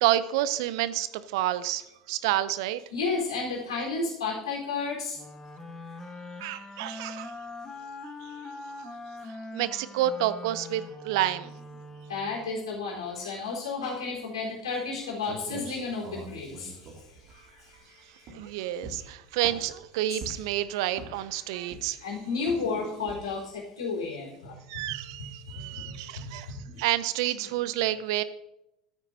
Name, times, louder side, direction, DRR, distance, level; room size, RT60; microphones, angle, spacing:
voice 1, 0.0-2.8 6.4-7.3 9.5-11.5 18.3-22.0 24.7-28.2, right 13 dB, 60° right, 16 dB, 0.5 m, -29 dB
voice 2, 2.9-5.2 12.1-16.9 17.4-17.8 20.1-20.2 22.0-24.5 25.7-25.8 26.2-26.3 26.6-26.8, left 4 dB, 80° left, -3 dB, 3.9 m, -32 dB
sound 1, 5.1-12.6, left 2 dB, 15° left, 1.4 m, -42 dB
sound 2, 14.9-15.0 15.2-17.8 18.2-18.5 18.8-19.8 20.2-20.6 20.9-21.3 21.7-22.1 22.5-22.7 23.1-23.4, right 3 dB, 45° right, 2.3 m, -43 dB
13.5 x 9.1 x 2.7 m, 0.86 s
figure-of-eight pair, 75°, 3 cm